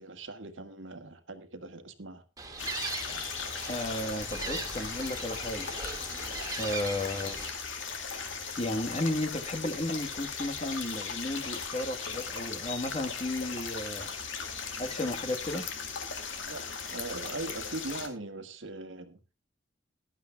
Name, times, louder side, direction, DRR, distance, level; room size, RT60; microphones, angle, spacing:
voice 1, 0.0-2.2 16.4-19.2, right 2 dB, 75° right, 9 dB, 1.6 m, -40 dB
Gull seagull, 2.4-7.5, right 3 dB, 20° right, 1.7 m, -39 dB
sound 1, 2.6-18.1, left 5 dB, 75° left, 2.3 m, -38 dB
voice 2, 3.7-5.7 6.6-7.4 8.6-14.1 14.8-15.6, left 1 dB, 30° left, 8 dB, 1.2 m, -33 dB
18.5 x 11.5 x 2.2 m, 0.30 s
head